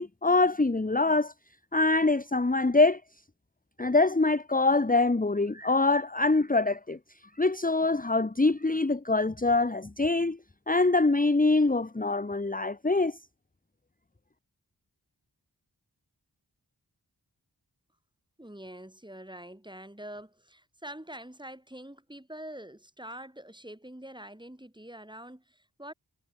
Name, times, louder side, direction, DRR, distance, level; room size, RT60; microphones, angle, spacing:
voice 1, 0.0-1.3 1.7-3.0 3.8-7.0 7.4-10.4 10.7-13.2, left 3 dB, 20° left, 1.0 m, -24 dB
voice 2, 18.4-25.9, right 1 dB, 10° right, 3.1 m, -45 dB
wide cardioid pair, 55°, 41 cm